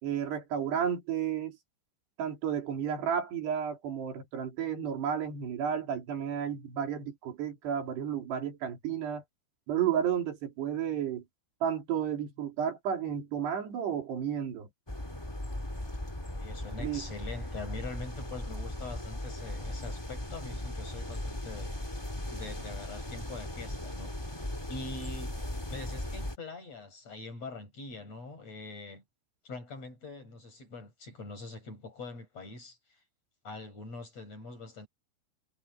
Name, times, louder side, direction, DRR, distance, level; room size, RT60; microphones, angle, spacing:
voice 1, 0.0-1.6 2.2-9.2 9.7-11.2 11.6-14.7 16.8-17.1, right 8 dB, 75° right, 5.8 m, -32 dB
sound 1, 14.9-26.3, left 1 dB, 10° left, 1.5 m, -38 dB
voice 2, 16.3-21.7 22.3-24.2 24.7-25.3 25.7-29.0 29.4-32.8 33.4-34.9, left 3 dB, 35° left, 9.1 m, -43 dB
omnidirectional pair, 4.9 m